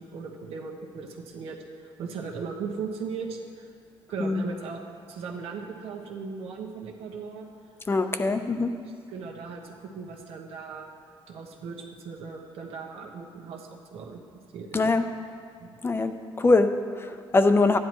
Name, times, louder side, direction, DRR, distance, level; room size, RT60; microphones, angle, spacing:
voice 1, 0.0-3.7 4.1-4.8 5.1-7.5 8.6-8.7 9.1-10.9 11.3-14.2 14.5-14.9 15.6-15.7, right 5 dB, 85° right, 0 dB, 1.2 m, -38 dB
voice 2, 7.9-8.7 14.7-15.0 15.8-17.8, left 3 dB, 25° left, 8 dB, 0.6 m, -23 dB
14.5 x 10.0 x 3.1 m, 2.2 s
cardioid pair, 115°, 10 cm